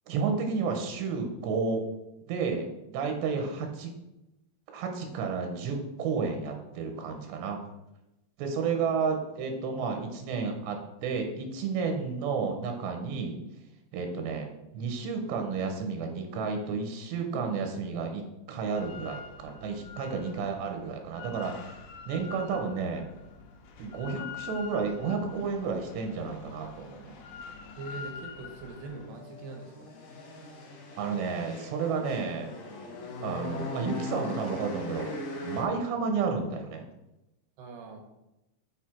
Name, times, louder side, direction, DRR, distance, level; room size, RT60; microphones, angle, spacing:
voice 1, 0.1-1.9 2.3-3.9 4.7-7.6 8.4-13.4 13.9-14.5 14.7-18.2 18.5-21.8 22.1-23.1 23.8-27.2 31.0-32.5 33.2-35.1 35.4-36.8, right 5 dB, 90° right, 4 dB, 3.2 m, -31 dB
Drill, 18.8-29.1, left 6 dB, 80° left, 1.8 m, -45 dB
voice 2, 27.8-29.9 37.6-38.0, right 3 dB, 70° right, 3 dB, 2.4 m, -42 dB
sound 1, 28.1-35.6, left 3 dB, 60° left, 2.1 m, -40 dB
6.7 x 6.5 x 4.5 m, 0.93 s
omnidirectional pair, 5.0 m